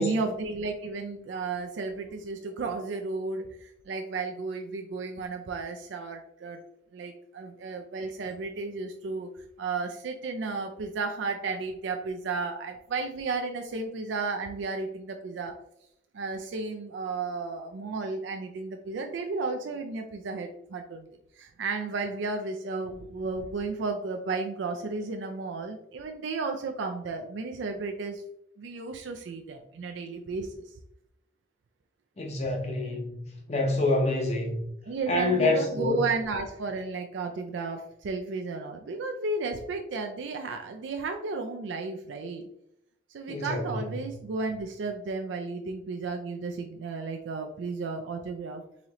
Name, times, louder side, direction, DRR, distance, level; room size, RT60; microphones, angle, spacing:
voice 1, 0.0-6.6 6.9-9.3 9.6-15.5 16.1-28.2 28.6-30.6 34.8-42.4 43.1-48.6, right 3 dB, 85° right, 0.4 m, -33 dB
voice 2, 32.2-34.6 35.1-36.0 43.3-43.9, left 2 dB, 35° left, 0.7 m, -27 dB
4.0 x 3.0 x 2.8 m
head